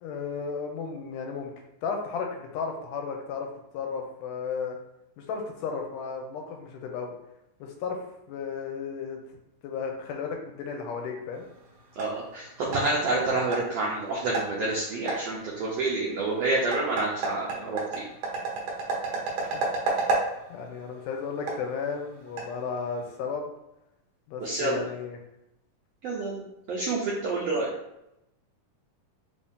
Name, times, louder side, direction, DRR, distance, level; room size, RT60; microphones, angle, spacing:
voice 1, 0.0-1.5 1.8-3.5 3.7-4.8 5.2-7.1 7.6-8.0 8.3-9.2 9.6-11.5 20.5-23.5 24.3-25.2, left 5 dB, 80° left, 3 dB, 2.1 m, -34 dB
sound 1, 11.3-23.2, right 3 dB, 65° right, 1.6 m, -34 dB
voice 2, 12.0-17.8 24.4-24.8 26.0-27.7, right 2 dB, 80° right, -4 dB, 1.4 m, -28 dB
4.9 x 2.7 x 3.6 m, 0.87 s
omnidirectional pair, 3.8 m